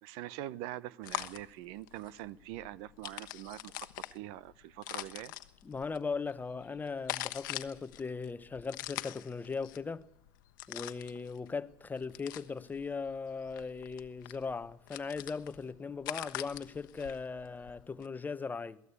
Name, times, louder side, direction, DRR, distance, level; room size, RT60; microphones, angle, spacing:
voice 1, 0.0-5.3, right 14 dB, 70° right, 0.9 m, -44 dB
sound 1, 1.0-18.1, left 17 dB, 85° left, 1.1 m, -44 dB
voice 2, 5.6-10.0 10.7-18.8, left 4 dB, 15° left, 1.0 m, -38 dB
22.5 x 16.5 x 8.4 m
supercardioid pair, 105°, 10 cm